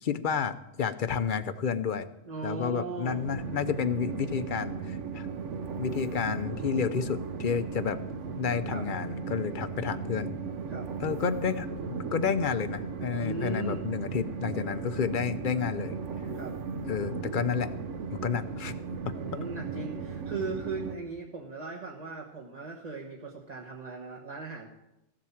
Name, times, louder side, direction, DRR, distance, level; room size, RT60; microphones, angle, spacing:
voice 1, 0.0-2.1 2.4-5.3 5.8-8.0 8.4-10.4 11.0-11.7 12.1-16.0 16.9-17.7 18.1-18.8, left 6 dB, 50° left, 11 dB, 0.7 m, -30 dB
voice 2, 2.3-3.2 8.7-8.9 10.7-10.9 13.2-13.8 16.3-16.6 19.2-24.7, right 4 dB, 35° right, -1 dB, 1.4 m, -38 dB
Train, 3.1-20.9, right 5 dB, 70° right, 1.2 m, -36 dB
15.0 x 7.7 x 7.2 m, 0.91 s
omnidirectional pair, 1.3 m